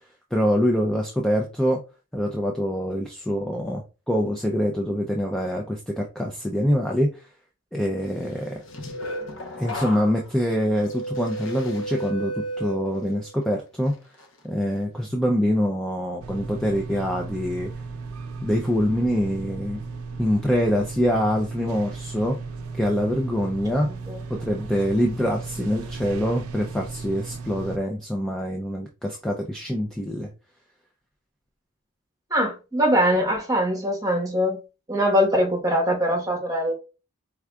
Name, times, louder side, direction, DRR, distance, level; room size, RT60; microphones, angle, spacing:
voice 1, 0.3-1.8 2.1-7.3 7.7-8.6 9.6-13.9 14.4-17.7 18.4-19.8 20.2-22.4 22.7-23.9 24.3-30.3, equal, 5° left, 0.4 m, -25 dB
sound 1, 8.4-13.4 13.8-14.2, right 1 dB, 60° left, 0.9 m, -34 dB
sound 2, 16.2-27.8, right 4 dB, 85° right, 0.6 m, -36 dB
voice 2, 23.7-24.2 32.3-34.6 34.9-36.7, equal, 15° right, 1.1 m, -22 dB
4.6 x 3.6 x 2.3 m
head